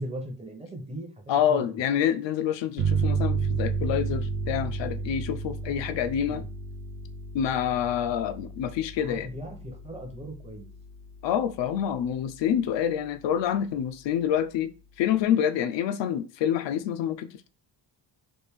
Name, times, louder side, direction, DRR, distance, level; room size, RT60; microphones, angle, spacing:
voice 1, 0.0-1.1 1.5-1.8 5.9-6.5 9.0-10.7, right 1 dB, 15° right, 0.6 m, -39 dB
voice 2, 1.3-6.4 7.3-9.3 11.2-14.7 15.0-17.5, left 9 dB, 85° left, 0.5 m, -27 dB
sound 1, 2.8-12.1, right 5 dB, 65° right, 0.6 m, -32 dB
3.4 x 2.5 x 3.4 m
wide cardioid pair, 165°, 43 cm